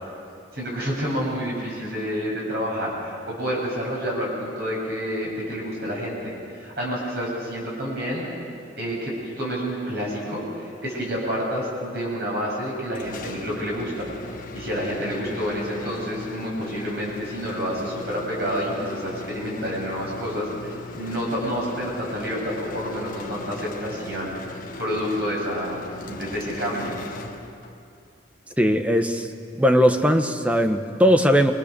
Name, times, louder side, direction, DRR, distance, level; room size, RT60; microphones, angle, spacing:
voice 1, 0.5-8.3 8.8-14.1 14.5-26.9, equal, 60° right, -4 dB, 7.7 m, -29 dB
sound 1, 13.0-27.9, left 2 dB, 45° left, 1.4 m, -38 dB
voice 2, 28.6-29.3 29.6-31.5, equal, 5° right, 6 dB, 1.2 m, -19 dB
28.0 x 23.0 x 6.9 m, 2.5 s
head